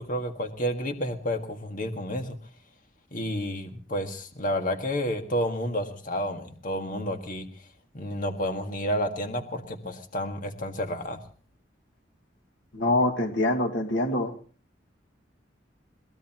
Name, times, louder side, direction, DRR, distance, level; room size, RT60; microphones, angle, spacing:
voice 1, 0.0-2.4 3.1-7.5 7.9-11.2, equal, 45° left, 5 dB, 1.8 m, -30 dB
voice 2, 12.7-14.3, left 1 dB, 85° left, 5 dB, 2.0 m, -25 dB
23.0 x 19.0 x 3.0 m, 0.41 s
head